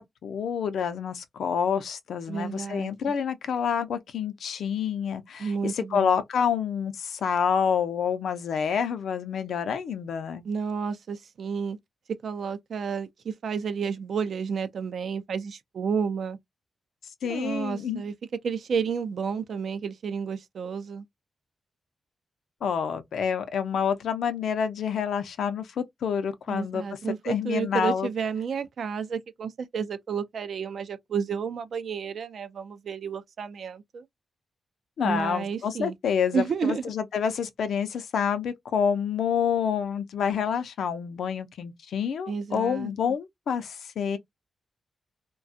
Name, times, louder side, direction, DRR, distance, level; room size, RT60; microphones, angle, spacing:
voice 1, 0.0-10.4 17.2-18.0 22.6-26.8 27.2-28.1 35.0-44.2, left 7 dB, 85° left, 0.5 m, -28 dB
voice 2, 2.3-2.9 5.4-6.2 10.4-11.8 12.1-16.4 17.2-18.1 18.4-21.0 26.5-34.0 35.0-36.0 36.3-36.8 42.3-42.9, right 6 dB, 70° right, 0.5 m, -31 dB
2.4 x 2.2 x 2.6 m
cardioid pair, 75°, 0 cm